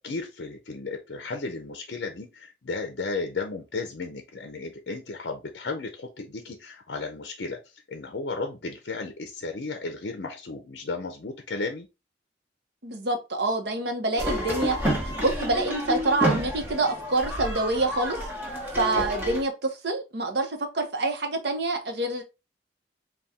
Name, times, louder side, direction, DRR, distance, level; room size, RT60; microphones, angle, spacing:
voice 1, 0.0-7.6 7.9-11.9 18.9-19.1, left 3 dB, 65° left, 0.5 m, -34 dB
voice 2, 12.8-14.9 15.2-18.3 18.7-22.2, right 2 dB, 65° right, 0.8 m, -27 dB
sound 1, 14.2-19.4, equal, 10° right, 0.9 m, -29 dB
4.1 x 2.3 x 3.5 m
head